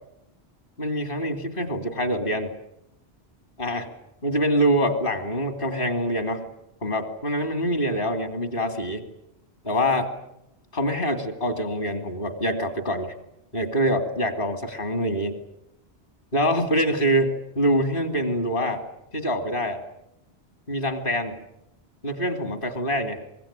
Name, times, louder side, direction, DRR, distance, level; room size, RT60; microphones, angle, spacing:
voice 1, 0.8-2.5 3.6-3.9 4.2-6.5 6.8-9.0 9.6-10.1 10.7-13.1 13.5-15.3 16.3-18.8 19.1-19.8 20.7-21.4 22.0-23.2, equal, 50° left, 7 dB, 2.9 m, -25 dB
24.5 x 22.5 x 9.0 m, 0.81 s
omnidirectional pair, 1.1 m